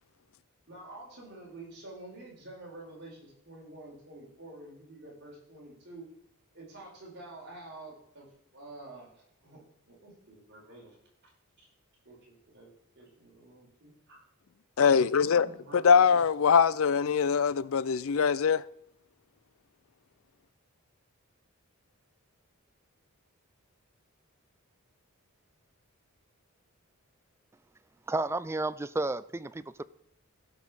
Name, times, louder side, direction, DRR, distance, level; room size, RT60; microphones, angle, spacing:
voice 1, 0.7-6.1 6.5-11.0 12.0-14.2 15.2-16.2, right 2 dB, 50° right, 4.9 m, -49 dB
voice 2, 14.8-15.5 15.8-18.6, left 6 dB, 65° left, 0.5 m, -23 dB
voice 3, 28.1-29.8, right 2 dB, 10° right, 0.3 m, -32 dB
15.5 x 5.5 x 6.3 m
head